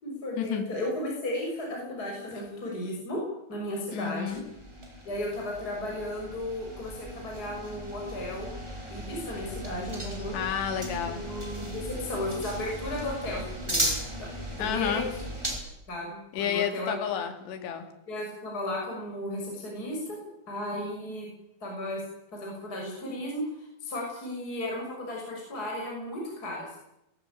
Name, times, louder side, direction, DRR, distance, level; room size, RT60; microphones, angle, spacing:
voice 1, 0.0-3.2 3.5-4.4 5.0-8.5 8.9-10.4 11.1-13.9 14.2-14.3 14.6-15.0 15.9-17.0 18.1-20.2 20.5-21.3 21.6-22.0 22.3-26.8, left 1 dB, 20° left, -1 dB, 6.7 m, -35 dB
voice 2, 3.9-4.4 10.3-11.2 14.6-15.1 16.3-17.9, left 8 dB, 70° left, 6 dB, 4.5 m, -30 dB
sound 1, 4.3-15.6, right 1 dB, 5° right, 5.1 m, -36 dB
21.5 x 17.5 x 9.2 m, 0.82 s
omnidirectional pair, 5.3 m